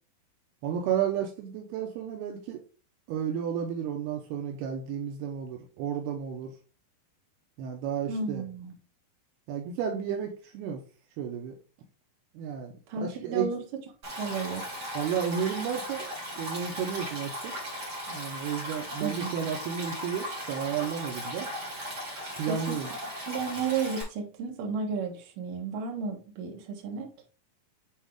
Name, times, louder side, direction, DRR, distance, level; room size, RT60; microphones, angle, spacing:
voice 1, 0.6-2.6 3.1-6.5 7.6-8.4 9.5-10.8 11.2-11.6 12.3-13.5 15.0-16.1 16.4-17.5 18.1-21.5 22.4-22.9, right 8 dB, 80° right, 2.7 m, -32 dB
voice 2, 8.1-8.7 12.9-13.6 14.2-14.8 19.0-19.5 22.5-22.6 23.3-27.1, right 5 dB, 65° right, 2.6 m, -33 dB
Stream, 14.0-24.0, equal, 35° right, 2.2 m, -37 dB
7.9 x 3.6 x 3.4 m
omnidirectional pair, 4.6 m